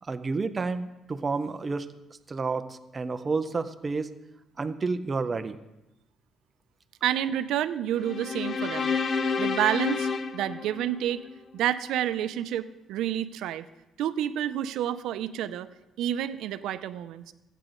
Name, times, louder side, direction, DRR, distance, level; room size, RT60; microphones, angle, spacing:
voice 1, 0.0-1.9 2.3-4.1 4.6-5.6, right 4 dB, 20° right, 10 dB, 0.5 m, -30 dB
voice 2, 7.0-9.0 9.4-11.2 11.5-13.7 14.0-15.7 16.0-17.3, right 11 dB, 80° right, 12 dB, 0.5 m, -29 dB
sound 1, 8.0-11.4, left 5 dB, 35° left, 0.5 m, -30 dB
15.0 x 9.1 x 3.8 m, 0.98 s
cardioid pair, 175°, 0 cm